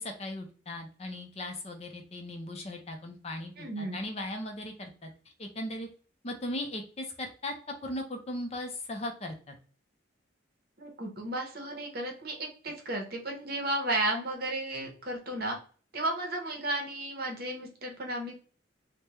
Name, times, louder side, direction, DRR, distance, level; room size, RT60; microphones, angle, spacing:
voice 1, 0.0-5.1 5.4-5.9 6.2-9.6, left 1 dB, 30° left, 4 dB, 0.5 m, -38 dB
voice 2, 3.6-4.0 10.8-15.6 15.9-18.3, right 1 dB, 50° right, 2 dB, 0.8 m, -33 dB
3.4 x 2.1 x 2.9 m, 0.40 s
head